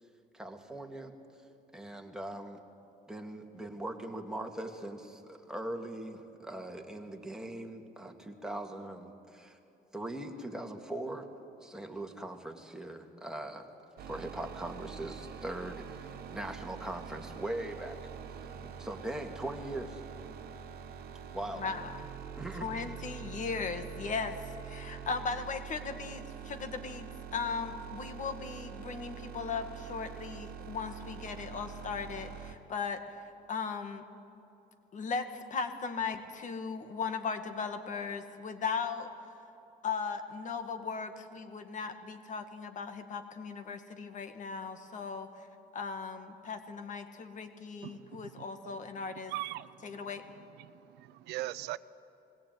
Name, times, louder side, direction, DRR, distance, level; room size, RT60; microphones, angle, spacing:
voice 1, 0.3-1.1 1.7-2.6 3.1-9.6 9.9-11.3 11.6-13.7 14.1-18.0 18.6-20.0 21.3-21.6 22.4-22.8, right 1 dB, 5° right, 2 dB, 2.2 m, -40 dB
sound 1, 14.0-32.5, right 8 dB, 65° right, 1.5 m, -45 dB
voice 2, 21.5-22.1 22.6-24.4 24.6-33.0 33.5-34.0 34.9-39.1 39.8-45.3 45.7-49.3 49.8-50.2, left 5 dB, 50° left, 7 dB, 2.0 m, -37 dB
voice 3, 47.8-48.8 49.1-50.0 50.6-51.8, right 16 dB, 80° right, 17 dB, 0.6 m, -41 dB
20.5 x 17.0 x 9.3 m, 2.8 s
cardioid pair, 110°, 17 cm